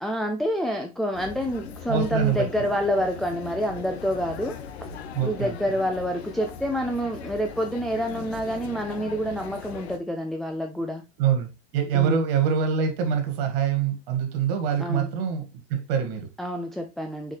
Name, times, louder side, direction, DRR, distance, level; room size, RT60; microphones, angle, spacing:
voice 1, 0.0-4.9 5.2-11.0 11.9-12.2 14.8-15.1 16.4-17.4, equal, ahead, 0.7 m, -28 dB
sound 1, 1.1-10.0, left 6 dB, 70° left, 1.3 m, -39 dB
voice 2, 1.9-2.5 5.1-5.5 11.2-16.3, right 7 dB, 60° right, 2.2 m, -25 dB
6.3 x 4.9 x 3.3 m
hypercardioid pair, 105°, 33 cm